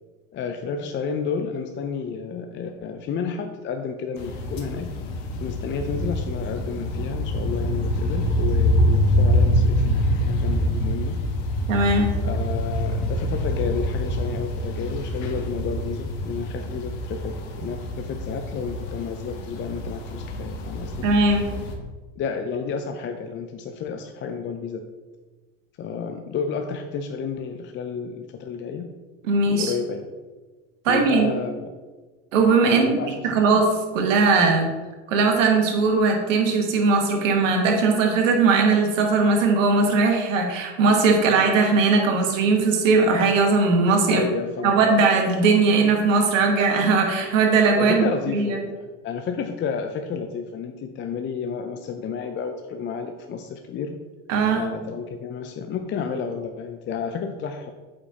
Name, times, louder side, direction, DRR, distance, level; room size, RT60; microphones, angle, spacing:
voice 1, 0.3-4.9 5.4-11.2 12.2-21.1 22.2-24.9 25.8-28.9 29.4-30.1 30.9-31.7 32.6-33.6 44.1-44.8 47.8-54.0 54.5-57.7, left 6 dB, 30° left, 5 dB, 0.5 m, -31 dB
sound 1, 4.2-21.8, left 1 dB, 75° left, 1.3 m, -25 dB
voice 2, 11.7-12.1 21.0-21.5 29.3-29.7 30.8-31.3 32.3-33.0 33.2-34.7 35.1-44.2 44.6-48.0 48.3-48.6 54.3-54.7, right 4 dB, 80° right, 2 dB, 1.6 m, -19 dB
8.1 x 5.1 x 2.9 m, 1.3 s
hypercardioid pair, 95°, 38 cm